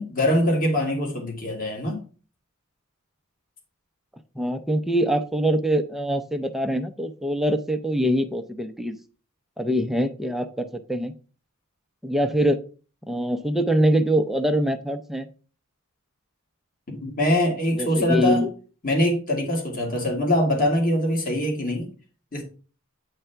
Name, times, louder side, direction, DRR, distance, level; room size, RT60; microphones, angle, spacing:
voice 1, 0.0-2.0 16.9-18.4 18.8-21.9 22.3-22.4, left 1 dB, 40° left, 0 dB, 1.9 m, -23 dB
voice 2, 4.4-9.0 9.6-11.1 12.0-12.6 13.1-15.3 17.8-18.5, equal, ahead, 6 dB, 0.5 m, -24 dB
8.9 x 3.4 x 5.6 m, 0.37 s
head